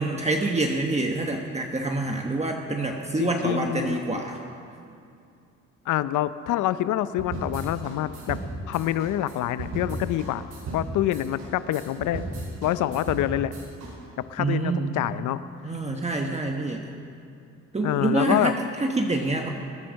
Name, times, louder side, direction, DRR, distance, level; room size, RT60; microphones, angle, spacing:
voice 1, 0.0-4.4 14.4-15.0 15.6-16.9 17.7-19.5, right 2 dB, 20° right, 2 dB, 1.3 m, -26 dB
voice 2, 3.2-4.2 5.9-8.4 8.7-10.4 10.7-12.3 12.6-13.5 14.3-15.4 17.8-18.5, left 13 dB, 80° left, 14 dB, 0.6 m, -26 dB
sound 1, 7.2-13.9, right 2 dB, 85° right, 5.3 m, -35 dB
20.5 x 10.5 x 6.4 m, 2.5 s
cardioid pair, 90°, 30 cm